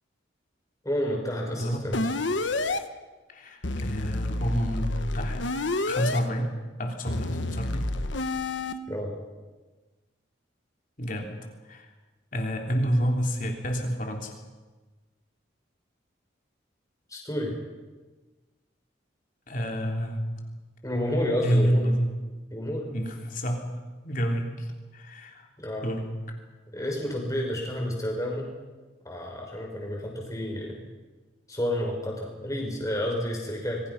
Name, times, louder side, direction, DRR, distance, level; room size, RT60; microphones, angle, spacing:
voice 1, 0.8-2.0 8.9-9.2 17.1-17.5 20.8-21.9 22.5-22.9 25.6-25.9 26.7-28.5 29.0-30.9 31.5-33.8, left 1 dB, 15° left, 0 dB, 5.8 m, -30 dB
sound 1, 1.9-2.8 3.6-6.2 7.1-8.7, left 2 dB, 70° left, 1.3 m, -29 dB
voice 2, 3.3-6.5 6.8-7.9 11.0-11.3 11.7-11.9 12.3-14.4 19.5-20.2 21.4-22.1 22.9-23.6 24.0-25.5 25.8-26.0, equal, 45° left, 2 dB, 3.6 m, -28 dB
26.5 x 22.5 x 5.9 m, 1.3 s
head